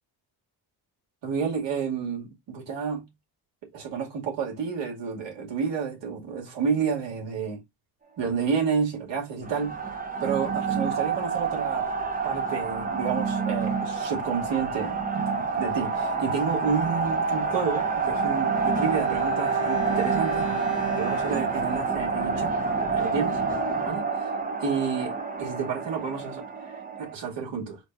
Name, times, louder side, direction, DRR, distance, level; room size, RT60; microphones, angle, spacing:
voice 1, 1.2-3.1 3.7-7.6 8.2-9.8 10.2-11.9 12.2-20.5 21.0-22.6 22.9-23.4 23.8-24.3 24.6-27.8, right 6 dB, 75° right, 2.3 m, -30 dB
sound 1, 9.4-27.1, right 4 dB, 20° right, 0.7 m, -28 dB
Bowed string instrument, 18.3-22.8 23.1-23.2, right 4 dB, 40° right, 1.7 m, -36 dB
4.4 x 2.5 x 4.5 m
cardioid pair, 110°, 44 cm